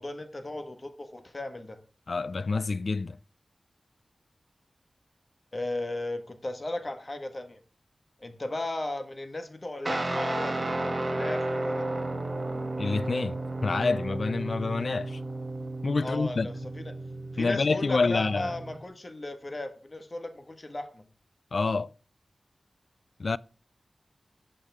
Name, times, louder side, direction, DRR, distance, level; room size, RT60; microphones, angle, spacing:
voice 1, 0.0-1.8 5.5-7.6 8.2-11.9 16.0-16.9 17.3-21.0, left 2 dB, 35° left, 1.5 m, -36 dB
voice 2, 2.1-3.2 12.8-15.2 15.8-16.5 17.4-18.6 21.5-21.9 23.2-23.4, left 4 dB, 60° left, 0.4 m, -27 dB
Guitar, 9.9-18.8, right 2 dB, 30° right, 2.1 m, -33 dB
12.5 x 8.5 x 3.5 m
wide cardioid pair, 85°, 0 cm